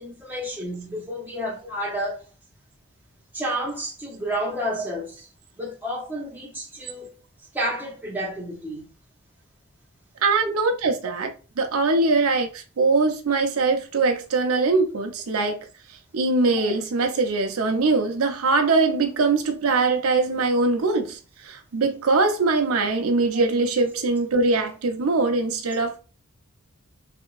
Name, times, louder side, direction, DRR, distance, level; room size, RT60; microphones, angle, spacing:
voice 1, 0.0-2.3 3.3-5.3 5.6-7.1 7.5-8.8 10.4-10.5 23.3-23.4, equal, 10° right, 0.8 m, -30 dB
voice 2, 10.2-11.3 11.6-15.6 16.1-26.0, right 3 dB, 80° right, 0.6 m, -22 dB
3.3 x 2.8 x 2.3 m
head